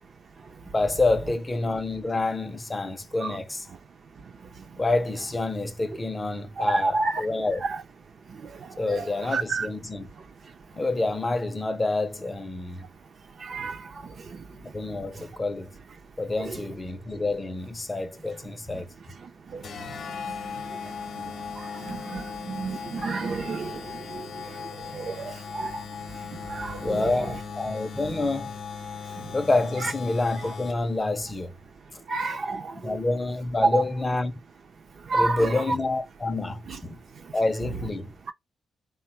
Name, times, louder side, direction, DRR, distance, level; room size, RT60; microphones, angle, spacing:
voice 1, 0.7-3.7 4.8-7.6 8.8-10.1 10.7-12.9 14.7-15.7 16.2-18.9 26.8-28.5 29.3-31.5 32.7-34.3 35.1-37.0 37.3-38.1, left 2 dB, 15° left, 0.5 m, -27 dB
voice 2, 6.7-7.2 7.6-7.8 8.9-9.7 13.5-13.7 16.4-16.6 21.9-23.7 24.9-25.3 26.5-27.0 29.8-29.9 32.1-32.6 33.7-33.8 35.1-35.8 36.7-36.8, right 3 dB, 40° right, 0.5 m, -28 dB
sound 1, 19.6-31.0, left 6 dB, 50° left, 0.8 m, -38 dB
3.9 x 2.1 x 4.3 m
wide cardioid pair, 175°, 0 cm